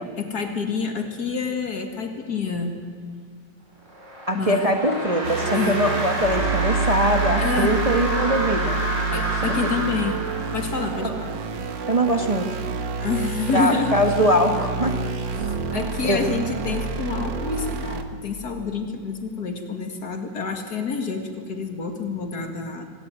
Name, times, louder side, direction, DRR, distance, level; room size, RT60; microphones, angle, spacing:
voice 1, 0.2-2.8 4.3-4.7 5.5-5.8 7.4-7.7 9.1-10.2 10.5-11.3 13.0-14.0 15.4-22.9, left 5 dB, 60° left, 5 dB, 2.6 m, -28 dB
sound 1, 3.8-10.9, equal, 40° right, 5.4 m, -29 dB
voice 2, 4.3-8.8 11.0-11.1 11.9-12.6 13.5-15.0 16.0-16.2, equal, 20° right, 5 dB, 1.3 m, -22 dB
sound 2, 5.2-18.0, right 5 dB, 85° right, 2.0 m, -28 dB
25.5 x 17.0 x 9.1 m, 2.1 s
omnidirectional pair, 1.9 m